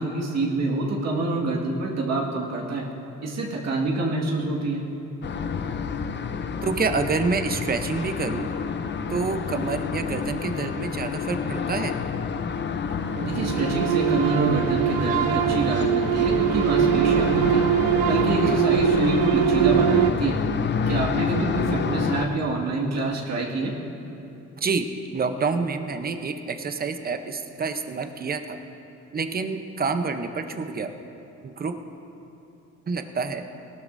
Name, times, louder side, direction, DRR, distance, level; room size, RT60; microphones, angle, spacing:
voice 1, 0.0-2.9 3.2-4.8 13.3-17.7 18.1-20.4 20.9-23.7, right 2 dB, 60° right, -2 dB, 1.9 m, -26 dB
sound 1, 5.2-22.3, left 5 dB, 35° left, 0.6 m, -28 dB
voice 2, 6.6-8.5 9.1-11.9 18.4-18.6 24.6-28.6 29.1-30.9 31.4-31.8 32.9-33.4, right 4 dB, 30° right, 7 dB, 0.8 m, -28 dB
sound 2, 13.1-20.1, right 9 dB, 90° right, 0.5 m, -22 dB
17.5 x 12.5 x 2.7 m, 2.9 s
cardioid pair, 90°, 30 cm